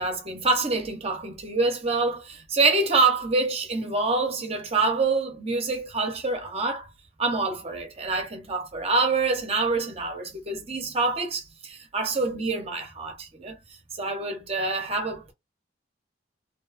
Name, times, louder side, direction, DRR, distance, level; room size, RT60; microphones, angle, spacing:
voice 1, 0.0-6.9 7.2-13.6 13.9-15.3, right 3 dB, 30° right, 0.6 m, -26 dB
2.6 x 2.2 x 2.3 m
head